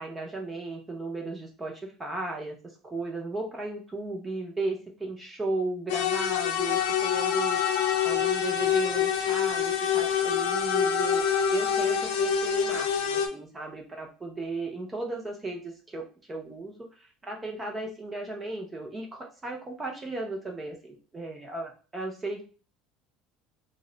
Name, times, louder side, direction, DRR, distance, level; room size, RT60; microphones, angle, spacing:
voice 1, 0.0-2.5 2.8-22.4, right 2 dB, 10° right, 1 dB, 0.5 m, -35 dB
sound 1, 5.9-13.3, left 8 dB, 85° left, 0.5 m, -26 dB
2.7 x 2.1 x 3.8 m, 0.36 s
cardioid pair, 170°, 0 cm